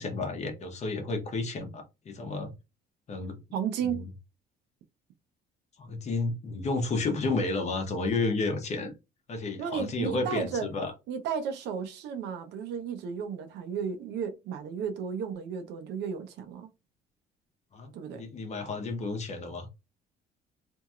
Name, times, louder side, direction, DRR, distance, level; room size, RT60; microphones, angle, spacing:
voice 1, 0.0-2.5 3.1-3.4 3.8-4.1 5.8-8.9 9.3-10.9 17.7-19.7, left 3 dB, 40° left, 1.0 m, -31 dB
voice 2, 3.5-4.1 9.6-10.7 11.1-16.7 17.9-18.2, right 7 dB, 85° right, 0.7 m, -33 dB
2.9 x 2.7 x 2.4 m
cardioid pair, 115°, 17 cm